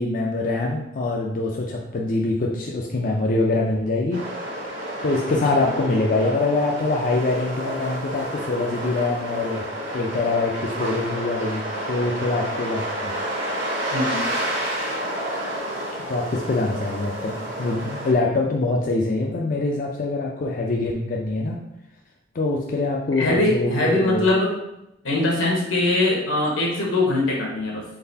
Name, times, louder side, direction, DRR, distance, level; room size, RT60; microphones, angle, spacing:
voice 1, 0.0-4.2 4.7-9.7 9.9-13.1 16.1-21.6 22.3-24.3, left 2 dB, 45° left, -1 dB, 0.4 m, -24 dB
sound 1, 4.1-18.1, right 1 dB, 60° right, 1.1 m, -30 dB
voice 2, 13.9-14.2 23.2-24.5 25.0-27.8, left 2 dB, 85° left, -2 dB, 1.2 m, -22 dB
3.9 x 3.8 x 2.7 m, 0.84 s
head